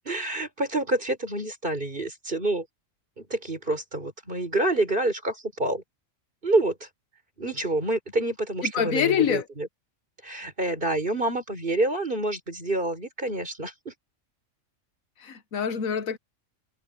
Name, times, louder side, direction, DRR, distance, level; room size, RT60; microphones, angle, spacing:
voice 1, 0.1-2.7 3.2-5.8 6.4-6.7 7.4-9.7 10.2-13.9, right 2 dB, 40° right, 5.7 m, -27 dB
voice 2, 8.6-9.4 15.2-16.2, left 8 dB, 85° left, 1.5 m, -25 dB
omnidirectional pair, 1.4 m